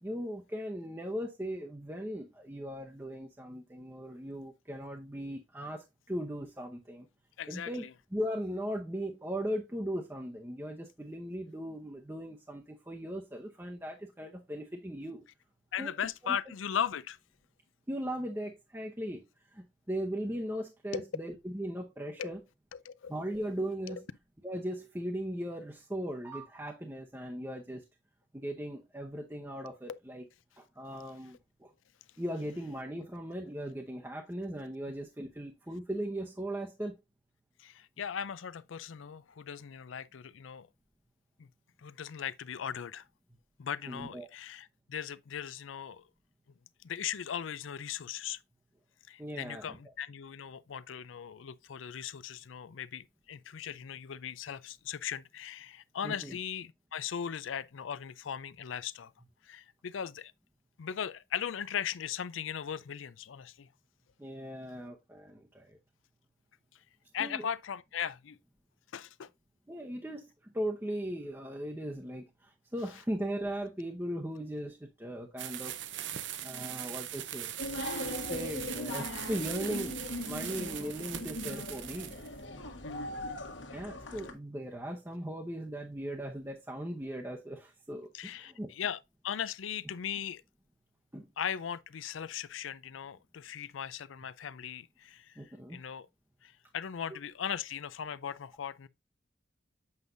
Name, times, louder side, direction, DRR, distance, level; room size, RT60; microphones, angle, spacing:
voice 1, 0.0-7.1 7.5-7.8 8.1-15.2 15.8-15.9 16.2-16.4 17.9-19.2 19.5-22.4 23.1-24.1 24.4-27.8 28.3-30.2 30.6-31.7 32.2-37.0 43.9-44.3 49.2-49.8 56.0-56.4 64.2-65.8 67.2-67.4 69.7-75.7 76.4-77.5 78.3-80.0 80.2-82.2 83.7-88.7 91.1-91.3 95.4-95.8, equal, 10° right, 0.7 m, -38 dB
voice 2, 7.4-7.9 15.7-17.2 20.9-21.1 22.2-22.3 22.7-23.1 23.9-24.0 29.9-30.0 37.6-40.7 41.4-41.5 41.8-43.1 43.6-46.1 46.8-48.4 49.1-59.1 59.4-60.3 60.8-63.7 67.1-68.4 68.9-69.3 82.8-83.1 88.1-90.4 91.4-96.1 96.4-98.9, left 8 dB, 85° left, 0.5 m, -38 dB
sound 1, 75.4-82.3, right 11 dB, 70° right, 0.6 m, -40 dB
sound 2, 77.6-84.3, left 1 dB, 70° left, 1.4 m, -39 dB
8.0 x 5.3 x 2.6 m
head